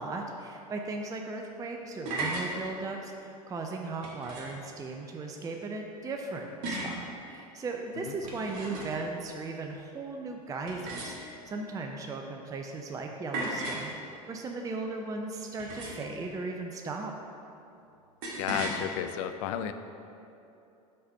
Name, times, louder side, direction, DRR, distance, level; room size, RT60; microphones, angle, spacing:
voice 1, 0.0-17.1, right 3 dB, 20° right, 2 dB, 0.5 m, -37 dB
sound 1, 1.8-2.5 4.0-4.6 6.6-7.0 8.1-9.1 10.7-11.5 13.3-13.9 15.6-16.2 18.2-18.8, right 2 dB, 60° right, 1.2 m, -36 dB
voice 2, 18.4-19.7, left 10 dB, 60° left, 10 dB, 0.4 m, -32 dB
5.3 x 4.1 x 5.3 m, 2.7 s
figure-of-eight pair, 80°, 19 cm